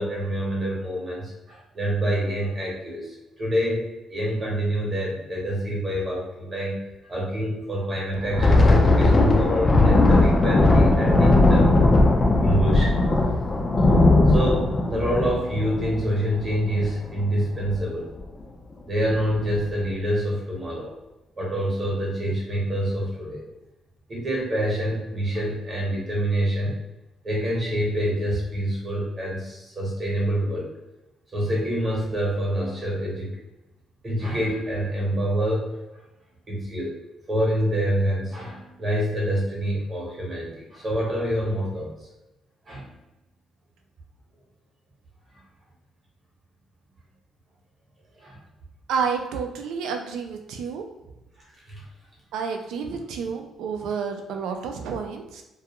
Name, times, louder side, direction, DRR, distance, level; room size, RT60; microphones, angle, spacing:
voice 1, 0.0-6.8 7.1-11.7 12.4-13.0 14.3-18.1 18.9-20.9 21.4-23.5 24.1-26.8 27.2-30.7 31.3-33.4 34.0-35.8 36.5-36.9 37.3-41.9 42.7-42.9 48.2-48.4 51.5-51.9, equal, 25° right, -4 dB, 0.9 m, -26 dB
Thunder, 8.2-17.2 17.6-17.8 18.2-18.4 19.0-19.5, left 2 dB, 25° left, 0.3 m, -18 dB
voice 2, 48.9-50.8 52.3-55.4, right 6 dB, 85° right, 4 dB, 0.4 m, -30 dB
2.3 x 2.3 x 2.8 m, 0.99 s
cardioid pair, 160°, 0 cm